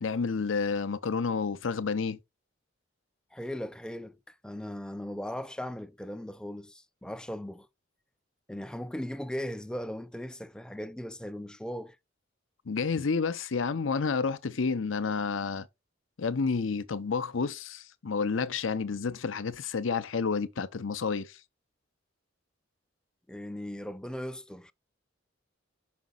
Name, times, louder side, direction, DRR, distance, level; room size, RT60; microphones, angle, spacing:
voice 1, 0.0-2.2 12.7-15.7 16.2-21.4, left 5 dB, 80° left, 0.6 m, -30 dB
voice 2, 3.3-7.7 8.5-12.0 23.3-24.7, equal, 5° left, 0.4 m, -38 dB
5.9 x 5.1 x 3.9 m
head